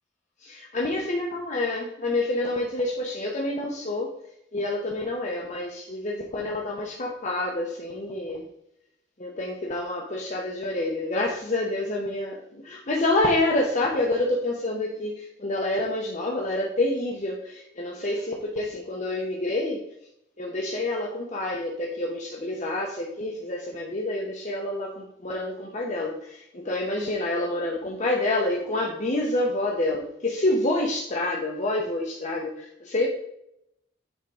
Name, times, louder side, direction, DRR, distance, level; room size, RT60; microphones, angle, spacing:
voice 1, 0.4-4.1 4.5-8.4 9.2-19.8 20.4-33.1, left 2 dB, 40° left, -2 dB, 0.9 m, -28 dB
8.8 x 3.7 x 4.8 m, 0.78 s
head